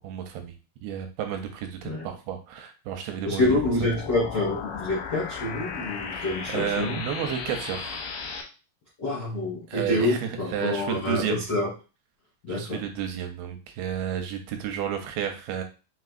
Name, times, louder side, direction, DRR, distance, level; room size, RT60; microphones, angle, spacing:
voice 1, 0.0-0.5 0.8-3.5 6.1-8.0 9.7-11.5 12.5-15.6, right 9 dB, 80° right, 5 dB, 2.4 m, -32 dB
voice 2, 3.2-7.3 9.0-11.7 12.4-12.8, left 2 dB, 65° left, -7 dB, 1.0 m, -27 dB
sound 1, 3.4-8.4, left 5 dB, 90° left, 2.7 m, -35 dB
5.8 x 2.8 x 2.5 m, 0.32 s
omnidirectional pair, 4.4 m